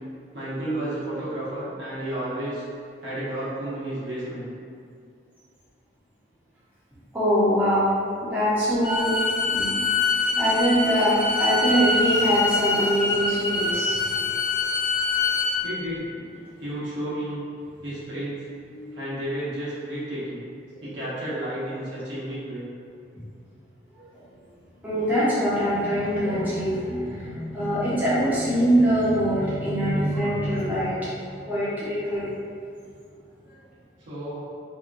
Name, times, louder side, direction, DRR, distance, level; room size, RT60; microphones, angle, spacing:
voice 1, 0.3-2.6 3.0-4.5 15.6-16.0 16.6-17.4 17.8-18.4 18.9-20.4 20.8-22.7 34.1-34.4, right 1 dB, 85° right, -10 dB, 0.9 m, -31 dB
voice 2, 7.1-7.9 8.2-9.2 9.4-9.8 10.4-14.1 18.7-18.9 24.0-24.2 24.8-31.2 31.5-32.4 34.2-34.3, equal, 10° right, -12 dB, 0.7 m, -23 dB
Bowed string instrument, 8.8-15.6, left 3 dB, 55° left, 0.6 m, -25 dB
2.8 x 2.2 x 2.5 m, 2.3 s
head